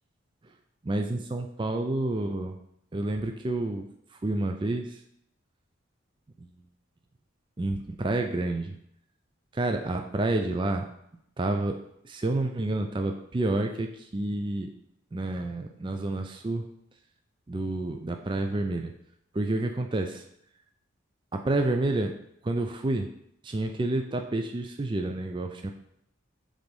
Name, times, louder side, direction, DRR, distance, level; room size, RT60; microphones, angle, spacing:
voice 1, 0.9-2.6 2.9-5.0 6.4-6.5 7.6-8.8 9.5-10.9 11.4-14.7 15.1-16.7 17.5-18.9 19.3-20.2 21.3-22.1 22.4-23.1 23.4-25.7, right 2 dB, 25° right, 4 dB, 0.4 m, -29 dB
4.9 x 3.8 x 5.3 m, 0.75 s
head